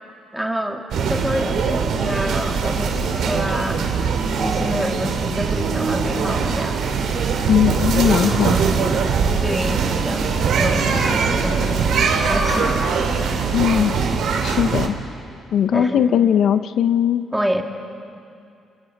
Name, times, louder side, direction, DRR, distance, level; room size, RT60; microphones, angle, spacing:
voice 1, 0.3-0.8 1.1-3.8 4.4-6.8 9.4-13.2 15.7-16.0 17.3-17.6, equal, 5° right, 2 dB, 2.4 m, -27 dB
sound 1, 0.9-14.9, right 5 dB, 75° right, 2.7 m, -21 dB
voice 2, 7.5-8.6 13.5-14.0 14.4-14.9 15.5-17.3, left 9 dB, 70° left, 10 dB, 0.7 m, -18 dB
28.5 x 27.5 x 5.4 m, 2.5 s
cardioid pair, 90°, 0 cm